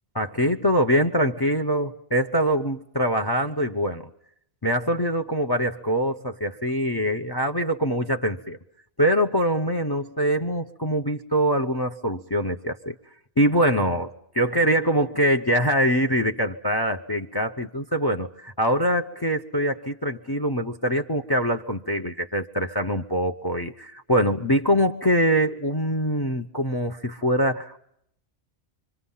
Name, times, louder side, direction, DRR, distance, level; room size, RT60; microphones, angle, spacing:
voice 1, 0.1-4.1 4.6-8.6 9.0-12.9 13.4-27.8, equal, 20° left, 8 dB, 0.9 m, -24 dB
26.0 x 25.0 x 5.7 m, 0.73 s
omnidirectional pair, 1.2 m